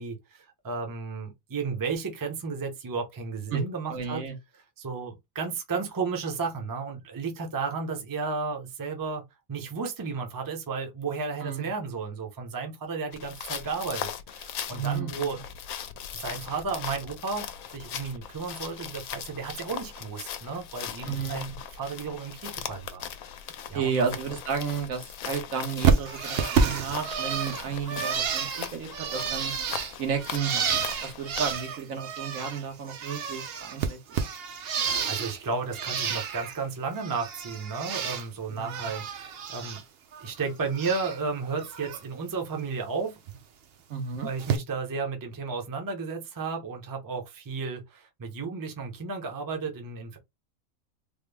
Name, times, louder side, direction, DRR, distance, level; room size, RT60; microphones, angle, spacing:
voice 1, 0.0-4.2 4.5-9.2 9.5-15.4 16.1-23.4 23.7-24.2 34.8-39.8 40.2-43.2 44.2-50.2, right 4 dB, 25° right, 0.5 m, -33 dB
voice 2, 3.9-4.3 11.4-11.7 14.7-15.3 21.0-21.4 23.7-29.5 30.0-34.0 38.5-38.9 43.9-44.3, right 6 dB, 85° right, 1.4 m, -32 dB
sound 1, 13.1-31.5, left 9 dB, 85° left, 1.0 m, -39 dB
Bird, 25.8-32.6 32.9-35.4 35.7-36.6 36.9-38.3 38.6-39.8 40.1-41.2 41.6-42.0 43.3-43.4 44.4-44.6, right 6 dB, 60° right, 0.7 m, -30 dB
3.5 x 2.0 x 3.3 m
omnidirectional pair, 1.4 m